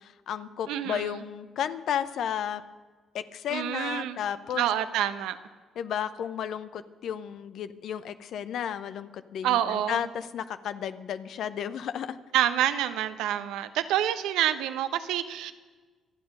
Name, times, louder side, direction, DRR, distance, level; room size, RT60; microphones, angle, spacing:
voice 1, 0.0-2.6 3.1-4.7 5.8-12.2, left 9 dB, 65° left, 12 dB, 0.8 m, -33 dB
voice 2, 0.7-1.2 3.5-4.2 4.5-5.4 9.4-10.1 12.3-15.5, right 11 dB, 75° right, 11 dB, 0.8 m, -27 dB
25.5 x 8.8 x 5.5 m, 1.4 s
hypercardioid pair, 45°, 0 cm